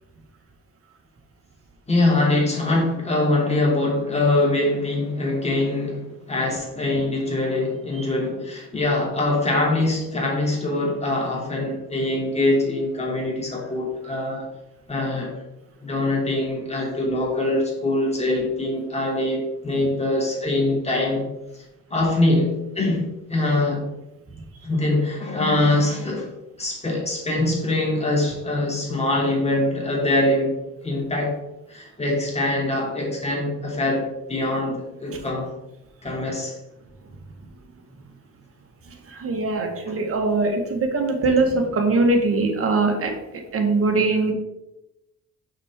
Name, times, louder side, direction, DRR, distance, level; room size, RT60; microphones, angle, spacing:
voice 1, 1.9-14.5 14.9-15.3 15.8-21.3 21.9-23.9 24.6-26.3 26.6-31.4 31.7-35.5 36.0-36.6, left 2 dB, 20° left, -2 dB, 2.8 m, -23 dB
voice 2, 38.9-43.1 43.5-44.3, right 3 dB, 50° right, 3 dB, 1.7 m, -22 dB
6.5 x 6.1 x 3.7 m, 0.94 s
cardioid pair, 90°, 30 cm